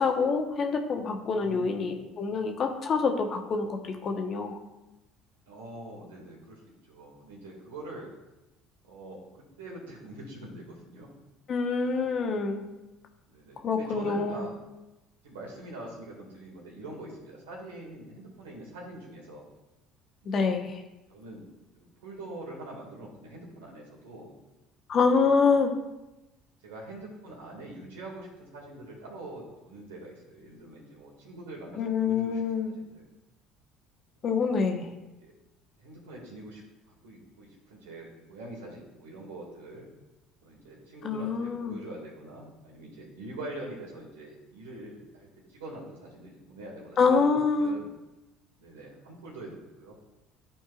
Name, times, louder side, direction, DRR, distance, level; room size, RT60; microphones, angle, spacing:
voice 1, 0.0-4.6 11.5-12.7 13.6-14.4 20.3-20.7 24.9-25.7 31.8-32.7 34.2-34.9 41.0-41.8 47.0-47.8, left 5 dB, 50° left, 4 dB, 1.1 m, -26 dB
voice 2, 1.4-1.9 5.5-6.6 6.9-8.1 8.8-11.1 13.3-14.6 15.2-19.4 20.2-20.5 21.1-21.4 21.7-24.3 25.0-25.4 26.6-33.0 34.2-34.3 35.2-35.3 35.8-36.6 36.9-39.9 40.4-47.9 48.6-49.9, right 1 dB, 85° right, -2 dB, 2.1 m, -44 dB
12.5 x 4.4 x 2.5 m, 1.0 s
hypercardioid pair, 65°, 0 cm